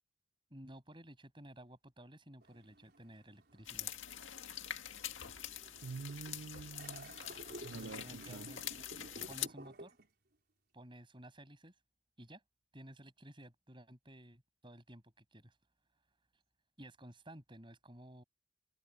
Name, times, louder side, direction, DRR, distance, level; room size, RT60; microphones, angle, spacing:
voice 1, 0.5-3.9 7.7-8.7 9.3-10.0 10.7-11.8 12.2-12.4 12.7-15.6 16.8-18.2, right 1 dB, 25° right, 7.0 m, -54 dB
sound 1, 2.4-10.1, right 1 dB, 55° right, 5.4 m, -54 dB
sound 2, 3.6-9.5, left 11 dB, 80° left, 1.9 m, -45 dB
voice 2, 5.8-7.1 7.6-8.5, right 4 dB, 85° right, 0.5 m, -46 dB
head